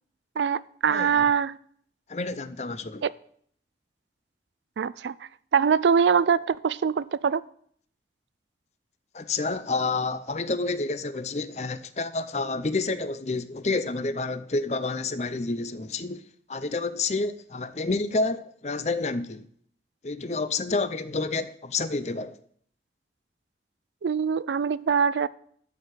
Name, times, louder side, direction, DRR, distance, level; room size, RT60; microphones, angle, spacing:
voice 1, 0.4-1.6 3.0-3.1 4.8-5.2 5.5-7.5 24.0-25.3, right 6 dB, 90° right, 0.4 m, -23 dB
voice 2, 2.1-3.0 9.1-16.2 16.5-19.5 20.0-22.4, left 3 dB, 40° left, 0.6 m, -29 dB
12.0 x 4.7 x 8.4 m
head